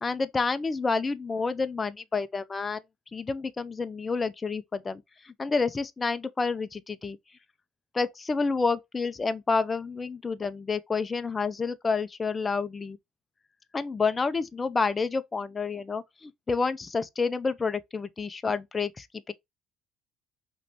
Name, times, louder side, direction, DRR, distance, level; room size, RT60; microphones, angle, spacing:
voice 1, 0.0-2.8 3.1-7.2 7.9-13.0 13.7-19.3, left 4 dB, 30° left, 0.6 m, -29 dB
5.0 x 3.2 x 2.9 m
hypercardioid pair, 60°, 0 cm